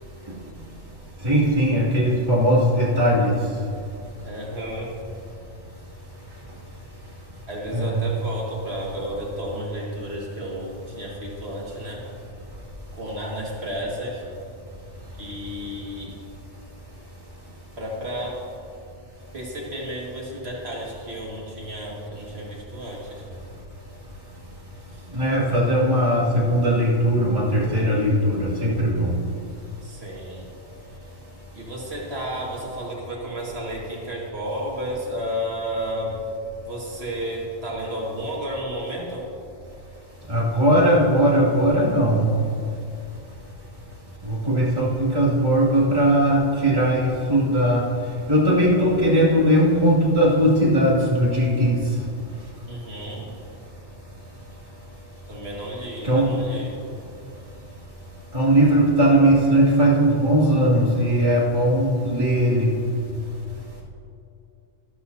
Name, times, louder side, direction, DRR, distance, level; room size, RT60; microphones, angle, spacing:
voice 1, 1.2-3.3 7.7-8.0 25.1-29.2 40.3-42.3 44.3-47.9 48.3-51.8 56.0-56.4 58.3-62.8, right 1 dB, 30° right, -7 dB, 2.5 m, -19 dB
voice 2, 4.2-4.9 7.5-12.0 12.9-14.2 15.2-16.2 17.8-18.4 19.3-23.2 24.9-25.1 29.8-30.5 31.5-36.2 36.6-39.3 52.7-53.3 55.3-56.8, equal, 60° right, -3 dB, 2.2 m, -32 dB
13.5 x 12.0 x 2.8 m, 2.5 s
omnidirectional pair, 1.2 m